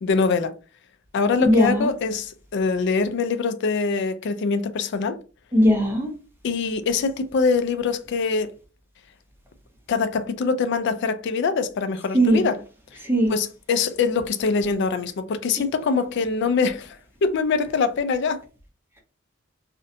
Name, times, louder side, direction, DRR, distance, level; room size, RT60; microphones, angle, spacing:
voice 1, 0.0-0.5 1.1-5.2 6.4-8.5 9.9-12.6 13.3-17.0 17.2-18.4, left 4 dB, 55° left, 0.3 m, -23 dB
voice 2, 1.5-1.9 5.5-6.1 12.1-12.5 13.0-13.3 15.6-15.7, equal, 10° right, 0.5 m, -19 dB
2.5 x 2.1 x 2.6 m
head